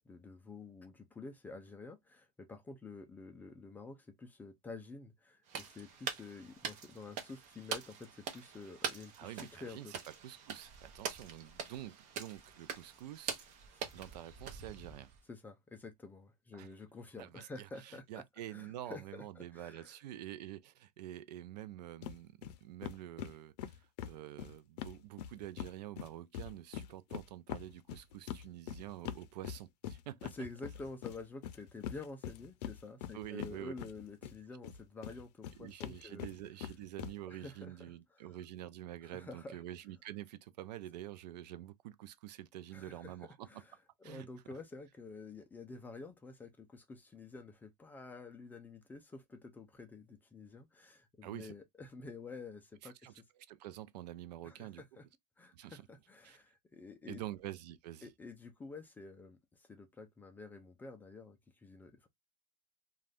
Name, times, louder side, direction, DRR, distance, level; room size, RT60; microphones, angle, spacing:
voice 1, 0.0-9.9 15.3-18.2 18.5-20.0 30.2-36.3 37.3-37.7 38.1-38.3 39.1-39.6 42.7-43.1 43.5-43.7 44.0-53.2 54.4-55.0 55.4-57.2 58.0-62.1, left 3 dB, 10° left, 0.3 m, -49 dB
sound 1, 5.5-15.2, right 6 dB, 35° right, 0.7 m, -44 dB
voice 2, 9.2-13.4 13.9-15.1 16.5-16.7 17.2-30.3 33.1-33.7 35.6-43.6 44.0-44.3 51.2-51.5 52.8-54.8 55.5-55.8 56.2-56.4 57.0-58.1, right 13 dB, 80° right, 0.5 m, -47 dB
sound 2, 22.0-22.2 22.4-22.6 22.8-25.7 26.0-34.3 34.6-37.1, left 10 dB, 75° left, 0.5 m, -43 dB
2.5 x 2.3 x 3.3 m
supercardioid pair, 150°, 21 cm